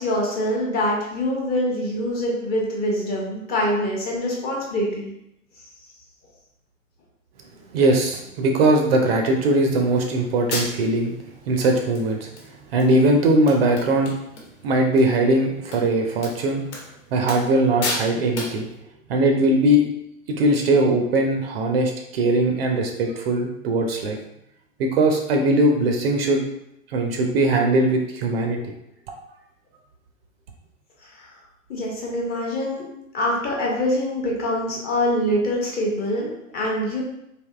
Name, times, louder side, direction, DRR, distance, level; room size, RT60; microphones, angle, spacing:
voice 1, 0.0-5.1 31.0-31.4 31.7-32.8 33.1-37.0, left 1 dB, 20° left, -3 dB, 0.7 m, -24 dB
voice 2, 7.7-11.1 11.5-12.3 12.7-14.1 14.6-16.7 17.1-18.7 19.1-19.8 20.3-24.2 24.8-26.4 26.9-28.7, right 1 dB, 45° right, 2 dB, 0.5 m, -20 dB
sound 1, 10.0-10.1 10.5-11.0 11.6-11.7 11.9-12.5 12.8-12.9 13.2-13.3 13.5-14.5 14.8-15.0 15.7-15.8 16.2-16.3 16.7-16.9 17.3-17.5 17.8-18.1 18.4-18.6, left 2 dB, 55° left, 1.1 m, -31 dB
3.4 x 2.5 x 2.4 m, 0.80 s
figure-of-eight pair, 110°, 42 cm